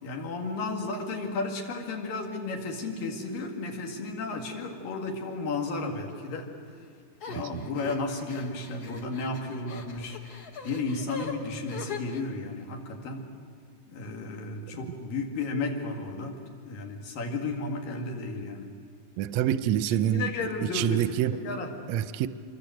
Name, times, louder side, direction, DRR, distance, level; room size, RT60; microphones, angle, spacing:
voice 1, 0.0-6.5 7.3-10.2 10.6-13.3 13.9-16.4 16.7-18.7 20.1-21.1 21.4-21.7, left 3 dB, 90° left, 3 dB, 4.1 m, -33 dB
sound 1, 7.2-12.2, left 5 dB, 50° left, 1.1 m, -41 dB
voice 2, 19.2-20.3 20.6-21.4 21.9-22.3, right 11 dB, 75° right, 13 dB, 1.6 m, -26 dB
26.0 x 24.0 x 8.0 m, 2.2 s
omnidirectional pair, 3.8 m